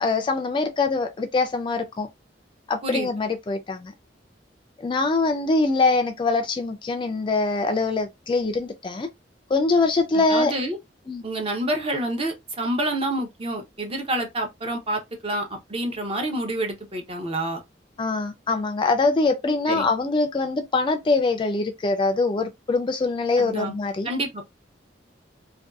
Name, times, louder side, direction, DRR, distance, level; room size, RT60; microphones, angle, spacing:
voice 1, 0.0-2.1 2.7-3.9 4.8-9.1 9.5-10.5 11.1-11.2 18.0-24.1, left 3 dB, 25° left, 0.3 m, -23 dB
voice 2, 10.1-10.8 11.2-17.6 19.7-19.9 23.4-23.7 24.0-24.4, right 1 dB, 30° right, 0.6 m, -28 dB
2.6 x 2.2 x 2.3 m
head